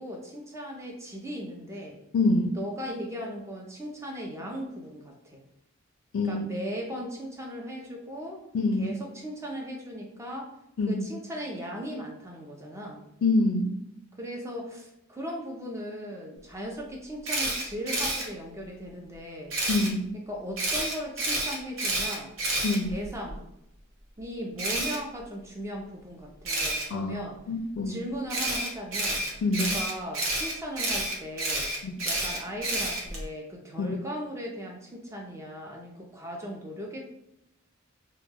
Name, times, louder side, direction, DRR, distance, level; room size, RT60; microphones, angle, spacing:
voice 1, 0.0-2.0 2.6-5.4 6.2-8.4 8.8-10.5 10.9-13.0 14.2-19.6 20.3-22.3 22.7-23.5 24.2-27.4 27.9-29.2 29.6-31.7 32.0-37.1, equal, 15° right, 0 dB, 0.5 m, -37 dB
voice 2, 2.1-2.6 6.1-6.5 8.5-9.0 10.8-11.1 13.2-13.8 19.7-20.1 22.6-22.9 26.9-27.2 27.5-28.0 29.4-29.7 31.8-31.9 33.8-33.9, left 2 dB, 75° left, 6 dB, 0.4 m, -25 dB
Camera, 17.2-18.2 19.5-19.9 20.6-23.3 24.6-25.0 26.4-26.8 28.3-33.2, right 2 dB, 85° right, 0.8 m, -29 dB
2.2 x 2.1 x 3.3 m, 0.81 s
head